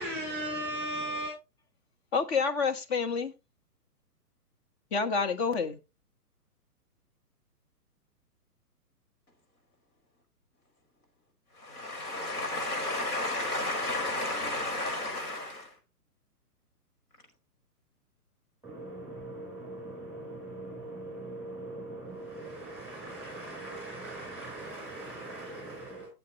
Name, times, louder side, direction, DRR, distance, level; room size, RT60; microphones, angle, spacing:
voice 1, 0.0-1.3 18.6-26.1, right 1 dB, ahead, 4.9 m, -39 dB
voice 2, 2.1-3.3 4.9-5.8, left 5 dB, 40° left, 1.4 m, -28 dB
voice 3, 11.6-15.7, left 2 dB, 65° left, 5.0 m, -32 dB
13.5 x 7.7 x 3.0 m
hypercardioid pair, 130°, 48 cm